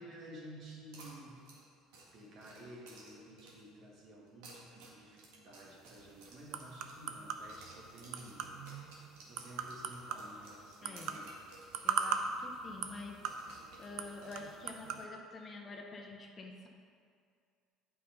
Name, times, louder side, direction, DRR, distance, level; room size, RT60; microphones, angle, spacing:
voice 1, 0.0-1.4 2.1-11.3, right 1 dB, 55° right, -3 dB, 2.1 m, -52 dB
sound 1, 0.9-3.8 4.3-7.2 7.5-12.2 12.5-12.6 13.2-14.9, right 3 dB, 85° right, 1.9 m, -57 dB
sound 2, 5.6-15.1, right 6 dB, 70° right, 0.6 m, -41 dB
voice 2, 10.8-11.2 11.8-13.3 13.8-16.7, left 3 dB, 30° left, 2 dB, 0.9 m, -48 dB
8.5 x 5.4 x 5.2 m, 2.2 s
cardioid pair, 115°, 0 cm